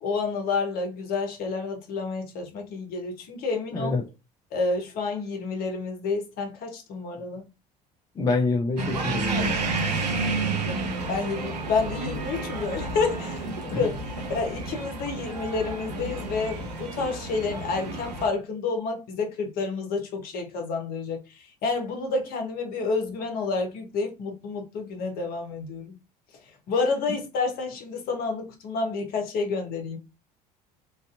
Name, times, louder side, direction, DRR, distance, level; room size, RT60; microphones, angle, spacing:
voice 1, 0.0-3.9 4.5-7.4 10.6-26.0 26.7-30.0, left 4 dB, 45° left, 0.8 m, -29 dB
voice 2, 8.2-9.5, left 3 dB, 20° left, 0.4 m, -26 dB
sound 1, 8.8-18.3, right 3 dB, 80° right, 0.6 m, -31 dB
2.6 x 2.3 x 2.3 m
figure-of-eight pair, 65°, 21 cm